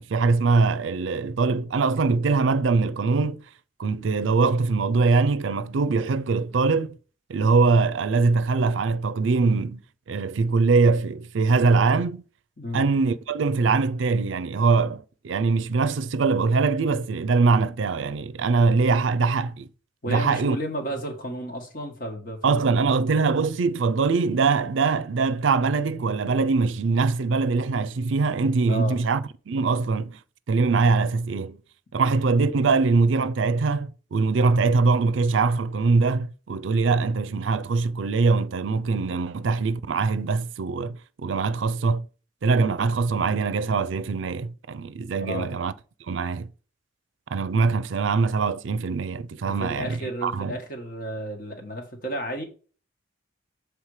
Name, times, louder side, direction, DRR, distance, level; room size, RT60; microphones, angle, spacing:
voice 1, 0.0-3.4 3.8-7.0 7.3-9.8 10.1-12.2 12.7-19.7 20.1-20.6 22.4-30.2 30.5-31.6 31.9-42.1 42.4-45.7 46.1-46.5 47.3-50.6, right 4 dB, 80° right, 0.5 m, -22 dB
voice 2, 20.0-23.0 28.7-29.0 31.9-32.0 45.2-45.5 49.4-52.5, equal, 45° left, 1.5 m, -33 dB
7.3 x 3.3 x 4.8 m
head